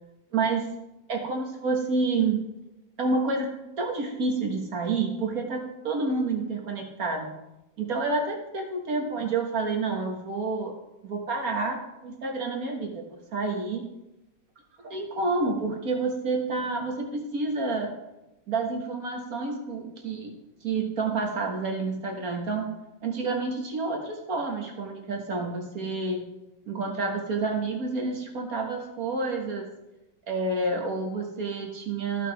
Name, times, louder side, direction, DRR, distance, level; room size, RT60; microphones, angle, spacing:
voice 1, 0.3-0.7 1.1-2.4 3.0-7.3 7.8-10.7 11.0-13.0 13.3-13.8 14.9-17.9 18.5-20.3 20.6-22.7 23.0-26.3 26.7-29.7 30.3-32.3, right 3 dB, 50° right, 2 dB, 1.8 m, -29 dB
15.0 x 5.8 x 3.5 m, 0.94 s
omnidirectional pair, 2.1 m